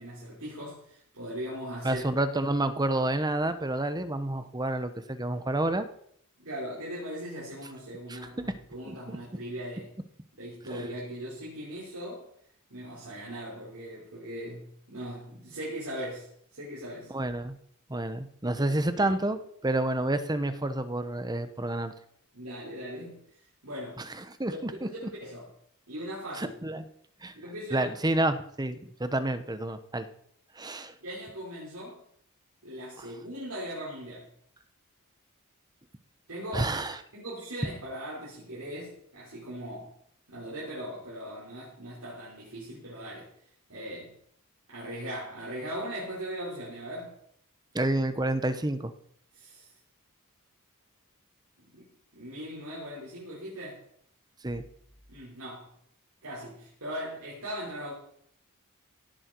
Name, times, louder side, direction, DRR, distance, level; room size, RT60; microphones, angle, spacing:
voice 1, 0.0-2.0 6.4-9.9 10.4-12.3 12.7-17.1 19.0-19.1 22.3-24.1 24.5-25.5 25.9-26.5 27.3-27.9 31.0-32.0 32.6-34.3 36.3-36.7 37.1-39.9 40.3-43.3 43.7-44.2 44.7-47.2 49.3-49.7 51.7-51.9 52.1-53.8 55.1-55.7 56.2-57.9, equal, 85° right, -7 dB, 5.4 m, -39 dB
voice 2, 1.8-5.9 8.1-8.2 8.9-9.2 10.7-10.8 17.1-17.6 17.9-21.9 24.0-24.9 26.3-26.9 27.2-27.3 27.7-30.1 30.6-30.9 33.0-33.1 36.5-37.0 47.7-48.9 54.4-54.6, right 1 dB, 20° right, 10 dB, 1.1 m, -29 dB
17.0 x 11.0 x 4.7 m, 0.66 s
head